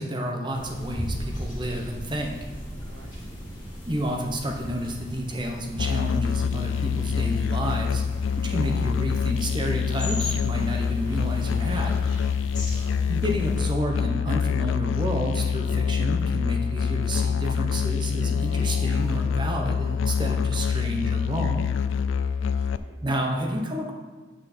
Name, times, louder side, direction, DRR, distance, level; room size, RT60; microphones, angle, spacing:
voice 1, 0.0-2.4 3.9-8.0 8.3-12.0 13.1-21.7 23.0-23.9, equal, 25° right, 2 dB, 1.0 m, -30 dB
sound 1, 0.5-13.7, equal, 20° left, 2.2 m, -37 dB
voice 2, 2.8-3.5 12.6-13.3 22.4-23.0, right 2 dB, 75° right, 4 dB, 1.1 m, -51 dB
Musical instrument, 5.8-22.8, left 6 dB, 80° left, 0.3 m, -26 dB
sound 2, 17.2-19.2 19.4-19.6 19.8-20.0 20.2-20.4 20.6-20.8 21.0-21.2 21.4-21.5 21.8-21.9 22.2-22.3, right 1 dB, 45° right, 2.0 m, -53 dB
8.3 x 6.3 x 4.3 m, 1.4 s
head